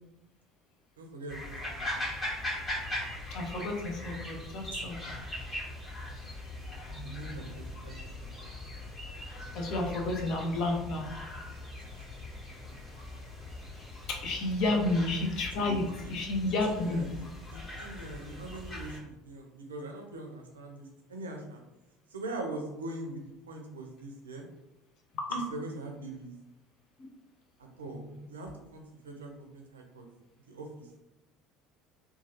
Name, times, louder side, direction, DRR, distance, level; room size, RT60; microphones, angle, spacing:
voice 1, 1.0-2.1 4.7-5.2 7.0-8.3 11.8-12.1 14.6-15.0 15.8-16.1 16.7-17.2 17.8-21.6 22.1-24.5 25.3-26.3 27.6-28.0 28.3-30.0 30.5-30.9, right 2 dB, 80° right, 3 dB, 0.5 m, -42 dB
sound 1, 1.3-19.0, left 1 dB, 30° left, 1.4 m, -40 dB
voice 2, 3.3-5.0 6.9-7.3 9.3-11.1 14.1-17.0 25.1-25.3 27.9-28.2, left 2 dB, 55° left, 2 dB, 0.6 m, -31 dB
3.0 x 2.2 x 2.8 m, 0.93 s
figure-of-eight pair, 65°, 0 cm